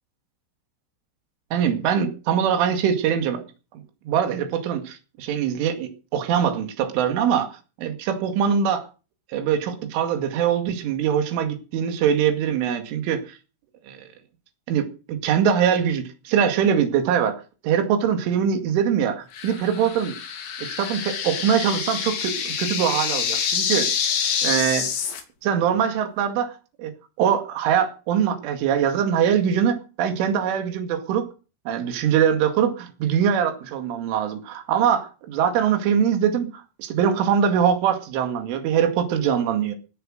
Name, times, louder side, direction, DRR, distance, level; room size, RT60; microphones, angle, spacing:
voice 1, 1.5-3.4 4.1-8.9 9.3-13.4 13.9-14.0 14.7-20.1 20.6-23.9 24.4-24.9 25.4-26.9 27.2-31.3 31.7-39.8, right 8 dB, 80° right, 6 dB, 4.7 m, -23 dB
sound 1, 19.3-25.2, left 7 dB, 70° left, 5.1 m, -27 dB
21.5 x 8.0 x 6.5 m, 0.34 s
omnidirectional pair, 5.6 m